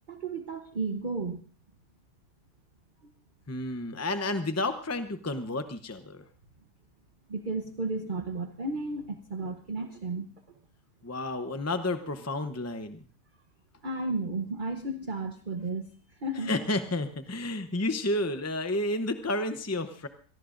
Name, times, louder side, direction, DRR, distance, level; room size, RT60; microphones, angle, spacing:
voice 1, 0.1-1.4 3.0-3.1 7.3-10.3 13.8-16.5, right 2 dB, 35° right, 6 dB, 1.0 m, -33 dB
voice 2, 3.5-6.2 11.0-13.0 16.4-20.1, left 2 dB, 20° left, 8 dB, 0.4 m, -31 dB
25.5 x 18.5 x 2.6 m, 0.41 s
omnidirectional pair, 1.7 m